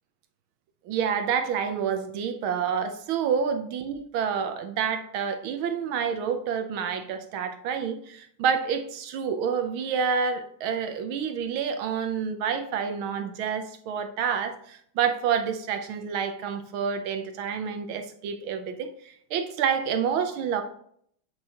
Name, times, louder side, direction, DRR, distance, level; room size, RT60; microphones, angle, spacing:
voice 1, 0.9-20.6, right 7 dB, 75° right, 7 dB, 1.5 m, -28 dB
7.8 x 6.3 x 2.9 m, 0.65 s
omnidirectional pair, 2.4 m